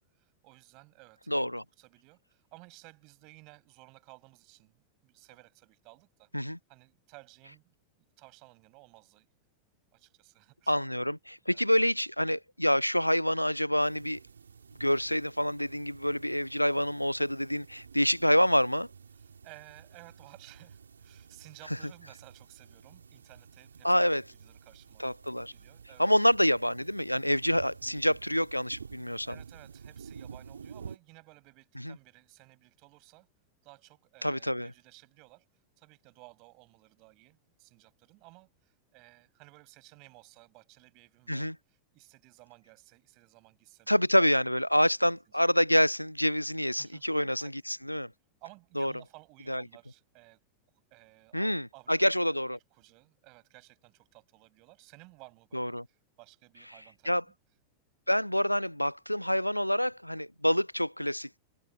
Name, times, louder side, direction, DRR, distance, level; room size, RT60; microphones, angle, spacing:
voice 1, 0.0-6.3 6.7-7.7 8.2-9.3 9.9-10.7 11.4-11.7 19.4-23.9 24.4-25.1 25.5-26.1 27.8-27.9 29.2-33.3 33.6-35.4 35.8-44.0 45.3-45.5 46.8-47.1 47.3-47.5 48.4-50.4 50.9-52.0 52.3-55.8 56.2-57.3, right 27 dB, 45° right, 7.2 m, -56 dB
voice 2, 1.3-1.6 6.3-6.6 10.7-14.2 14.8-18.9 23.8-24.2 25.0-25.5 26.0-29.3 31.8-32.0 34.2-34.7 41.3-41.6 43.9-48.1 48.8-48.9 49.5-49.6 51.3-52.6 55.5-55.8 57.1-57.2 58.1-61.4, equal, 90° left, 0.5 m, -27 dB
sound 1, 13.8-31.0, right 6 dB, 70° right, 4.1 m, -51 dB
open air
figure-of-eight pair, 90°, 0 cm